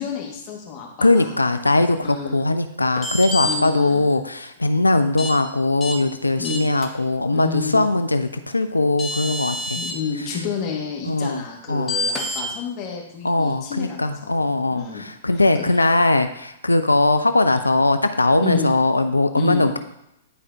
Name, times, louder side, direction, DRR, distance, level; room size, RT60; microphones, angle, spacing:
voice 1, 0.0-1.4 2.0-2.4 3.4-4.2 6.4-6.7 7.3-7.9 9.7-15.1 15.3-15.6 18.4-18.7 19.3-19.7, left 6 dB, 35° left, -2 dB, 2.1 m, -30 dB
voice 2, 1.0-9.8 11.1-11.4 11.7-11.9 13.2-19.8, left 2 dB, 90° left, 9 dB, 0.5 m, -20 dB
sound 1, 3.0-3.6 5.2-5.3 5.8-5.9 6.4-6.9 8.5-8.6 9.0-9.9 11.9-12.4, left 2 dB, 20° left, 1.4 m, -27 dB
11.0 x 4.8 x 2.9 m, 0.82 s
figure-of-eight pair, 110°, 0 cm